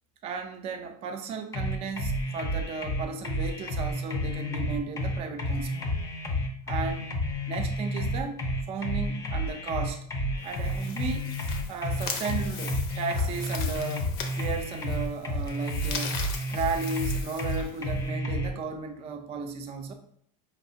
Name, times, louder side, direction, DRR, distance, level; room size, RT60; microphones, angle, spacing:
voice 1, 0.2-6.0 6.7-7.2 7.5-8.4 8.7-10.1 10.4-11.3 11.7-16.2 16.5-19.9, right 4 dB, 30° right, 5 dB, 0.5 m, -35 dB
sound 1, 1.5-18.5, left 1 dB, 15° left, 0.5 m, -30 dB
sound 2, 10.4-18.1, left 5 dB, 75° left, 0.8 m, -40 dB
4.9 x 3.1 x 2.7 m, 0.66 s
supercardioid pair, 150°, 19 cm